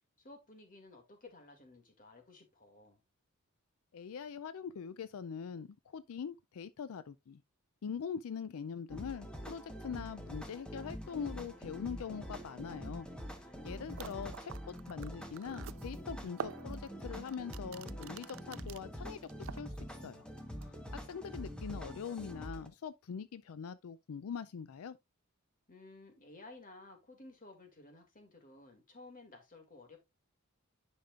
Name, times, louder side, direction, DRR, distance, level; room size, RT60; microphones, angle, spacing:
voice 1, 0.2-3.0 13.4-14.6 25.7-30.0, left 2 dB, 40° left, 2.3 m, -55 dB
voice 2, 3.9-7.4 7.8-13.1 13.4-20.2 20.6-25.0, left 6 dB, 70° left, 0.4 m, -43 dB
sound 1, 8.9-22.7, equal, 5° left, 1.1 m, -45 dB
sound 2, 13.6-13.7 13.9-18.8 19.2-20.0 20.4-20.7, right 8 dB, 60° right, 0.3 m, -47 dB
10.0 x 5.3 x 2.4 m
head